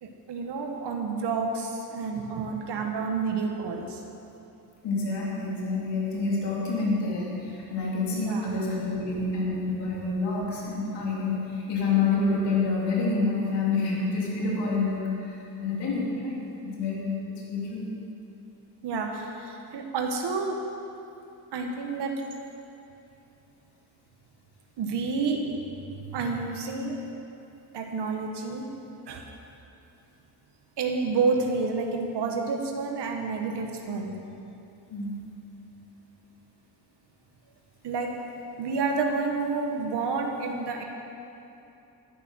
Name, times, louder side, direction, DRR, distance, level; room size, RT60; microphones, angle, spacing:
voice 1, 0.0-4.0 8.1-8.5 18.8-20.6 21.5-22.1 24.8-25.4 26.1-27.0 27.7-28.7 29.1-29.2 30.8-34.1 37.8-38.1 38.6-40.8, right 4 dB, 80° right, 2 dB, 1.5 m, -29 dB
voice 2, 4.8-17.9 34.9-35.2, left 3 dB, 85° left, -4 dB, 3.1 m, -28 dB
12.0 x 11.0 x 6.4 m, 2.8 s
cardioid pair, 80°, 40 cm